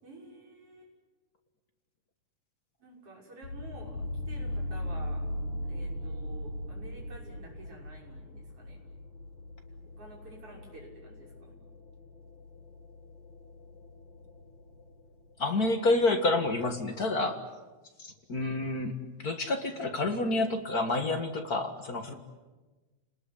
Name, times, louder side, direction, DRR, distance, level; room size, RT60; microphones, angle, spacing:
voice 1, 0.0-0.9 2.8-5.2 5.6-8.8 9.8-11.6, right 2 dB, 45° right, -1 dB, 7.1 m, -50 dB
sound 1, 3.4-15.4, left 1 dB, 70° left, 8.8 m, -40 dB
voice 2, 15.4-17.4 18.0-18.9 19.2-22.1, left 2 dB, 40° left, 5 dB, 1.5 m, -28 dB
29.5 x 20.0 x 9.9 m, 1.2 s
omnidirectional pair, 3.6 m